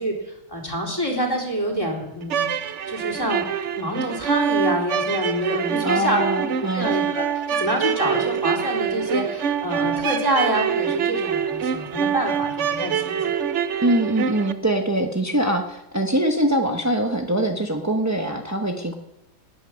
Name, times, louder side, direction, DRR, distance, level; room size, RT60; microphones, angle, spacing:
voice 1, 0.0-3.5 3.7-6.2 6.6-7.3 7.6-13.2, right 1 dB, 10° left, -1 dB, 3.2 m, -26 dB
sound 1, 2.2-14.5, right 8 dB, 65° right, 0.7 m, -25 dB
voice 2, 5.8-6.9 13.8-18.9, right 1 dB, 20° right, 3 dB, 0.4 m, -23 dB
19.0 x 9.0 x 6.3 m, 0.87 s
omnidirectional pair, 2.1 m